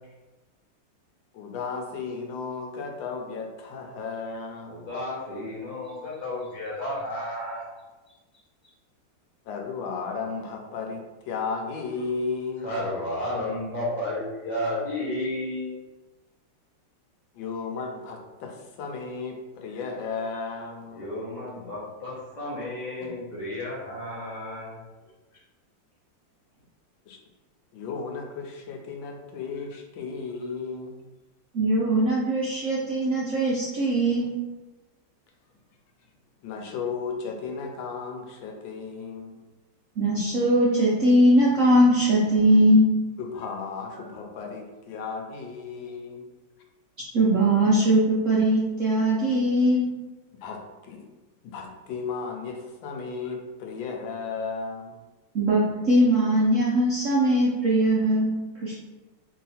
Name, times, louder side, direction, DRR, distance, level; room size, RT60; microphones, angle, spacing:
voice 1, 1.3-4.8 9.5-12.7 17.3-21.0 23.0-23.1 27.1-27.2 27.7-31.0 36.4-39.5 43.2-46.2 50.3-51.0 51.4-55.0, left 4 dB, 85° left, 3 dB, 1.4 m, -34 dB
voice 2, 4.6-7.7 12.6-15.7 20.9-24.8, left 1 dB, 35° left, -5 dB, 0.7 m, -32 dB
voice 3, 31.5-34.3 40.0-42.9 47.1-49.9 55.3-58.8, right 1 dB, 65° right, -6 dB, 0.8 m, -21 dB
3.1 x 2.8 x 4.1 m, 1.2 s
omnidirectional pair, 2.0 m